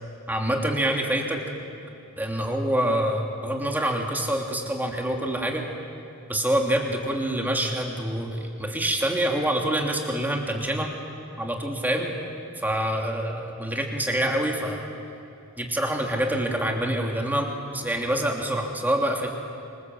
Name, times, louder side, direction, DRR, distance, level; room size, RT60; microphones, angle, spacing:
voice 1, 0.3-1.4 2.2-5.6 6.3-10.9 11.4-12.1 12.6-14.9 15.6-19.3, right 1 dB, 10° right, 1 dB, 2.9 m, -26 dB
26.5 x 26.0 x 7.8 m, 2.8 s
head